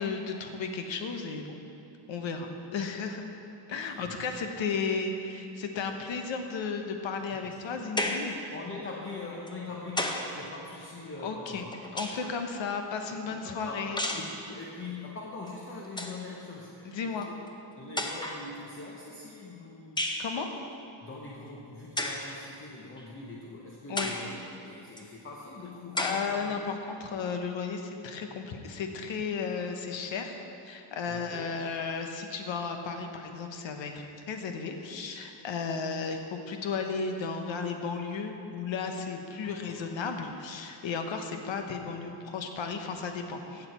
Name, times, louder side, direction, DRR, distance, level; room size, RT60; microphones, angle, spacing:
voice 1, 0.0-1.6 2.1-3.3 3.7-8.4 11.2-11.6 11.9-14.0 16.8-17.3 20.2-20.5 23.9-24.1 26.0-30.4 30.6-43.7, left 5 dB, 85° left, 5 dB, 1.1 m, -34 dB
voice 2, 3.7-4.3 7.3-7.5 8.5-11.7 13.1-17.4 17.6-20.2 21.0-26.6 31.1-31.6 39.4-39.8, left 3 dB, 30° left, -2 dB, 0.9 m, -43 dB
sound 1, 8.0-8.4 9.5-10.3 11.5-12.4 14.0-14.4 15.5-15.6 15.8-16.2 17.2-17.3 18.0-18.5 20.0-20.3 22.0-22.3 23.0-23.1 24.0-24.3 25.0-25.1 26.0-26.3, left 1 dB, 10° left, 0.6 m, -32 dB
16.5 x 6.8 x 4.3 m, 2.8 s
wide cardioid pair, 160°, 45 cm